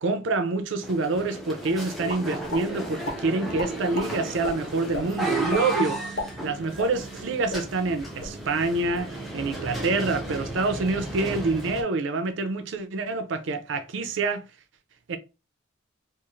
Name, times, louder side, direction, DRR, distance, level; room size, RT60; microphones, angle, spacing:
voice 1, 0.0-6.0 6.4-14.4 15.1-15.2, right 3 dB, 60° right, 0.4 m, -27 dB
sound 1, 0.8-11.8, right 2 dB, ahead, 0.4 m, -34 dB
sound 2, 2.1-2.6 3.0-3.2 3.6-4.1 4.4-4.5 4.9-5.0 5.5-5.6 6.0-7.2 7.5-7.6 8.0-8.3, left 2 dB, 50° left, 0.9 m, -32 dB
2.4 x 2.4 x 3.0 m
head